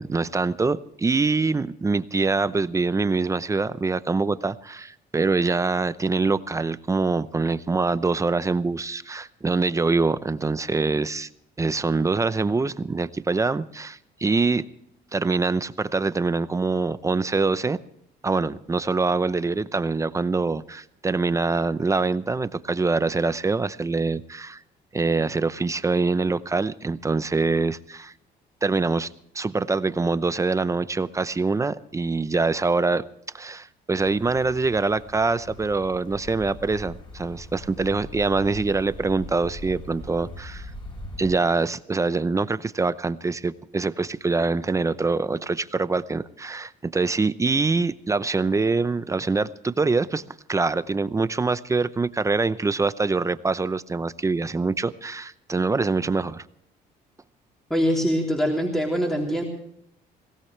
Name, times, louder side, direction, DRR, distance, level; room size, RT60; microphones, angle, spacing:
voice 1, 0.0-11.3 11.6-14.6 15.1-17.8 18.2-24.6 24.9-28.1 28.6-29.1 29.3-33.1 33.3-40.7 41.2-50.2 50.5-56.4, right 3 dB, 20° right, 14 dB, 0.7 m, -24 dB
sound 1, 33.9-41.3, left 1 dB, 30° left, 7.3 m, -41 dB
voice 2, 57.7-59.4, equal, ahead, -1 dB, 3.4 m, -23 dB
22.5 x 17.5 x 3.3 m, 0.72 s
cardioid pair, 110°, 17 cm